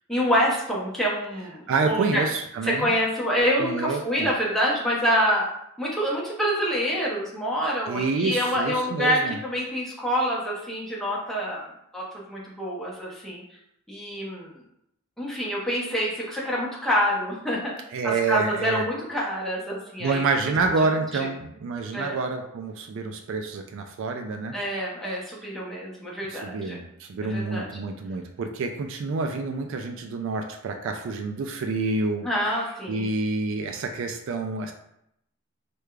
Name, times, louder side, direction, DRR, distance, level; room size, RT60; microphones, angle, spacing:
voice 1, 0.1-2.2 2.6-5.5 5.8-11.6 11.9-13.4 13.9-14.5 15.2-17.7 18.0-20.2 21.9-22.1 24.5-26.8 27.2-27.7 32.2-33.1, equal, ahead, -6 dB, 0.7 m, -26 dB
voice 2, 1.7-2.9 3.6-4.3 7.9-9.4 17.9-18.9 20.0-24.6 26.3-32.3 32.9-34.7, right 3 dB, 60° right, 5 dB, 0.3 m, -28 dB
4.7 x 2.2 x 2.3 m, 0.78 s
head